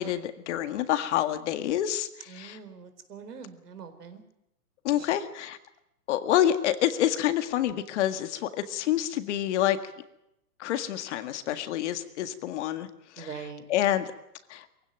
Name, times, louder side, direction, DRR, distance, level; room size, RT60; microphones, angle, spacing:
voice 1, 0.0-2.1 2.3-2.6 4.8-5.6 6.1-9.8 10.6-12.9 13.2-13.3 13.7-14.1 14.5-14.7, left 12 dB, 50° left, 10 dB, 1.9 m, -27 dB
voice 2, 2.3-4.2 5.0-5.1 13.2-13.6, right 6 dB, 85° right, 9 dB, 4.6 m, -43 dB
23.0 x 16.5 x 9.2 m, 0.85 s
hypercardioid pair, 145°, 46 cm